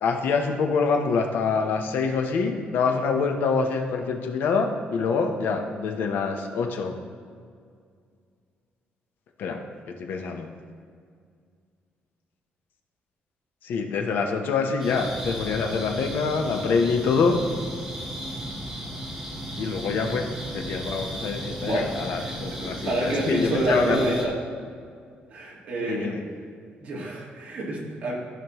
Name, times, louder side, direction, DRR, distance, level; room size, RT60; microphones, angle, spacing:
voice 1, 0.0-7.0 9.4-9.6 9.9-10.5 13.6-17.4 19.6-24.3 25.8-26.2, left 5 dB, 65° left, 4 dB, 0.8 m, -25 dB
sound 1, 14.8-24.2, equal, 10° right, 1.2 m, -35 dB
voice 2, 21.6-24.4 25.3-26.3 26.8-28.1, right 2 dB, 40° right, -4 dB, 1.8 m, -28 dB
14.0 x 5.2 x 3.0 m, 2.2 s
cardioid pair, 175°, 4 cm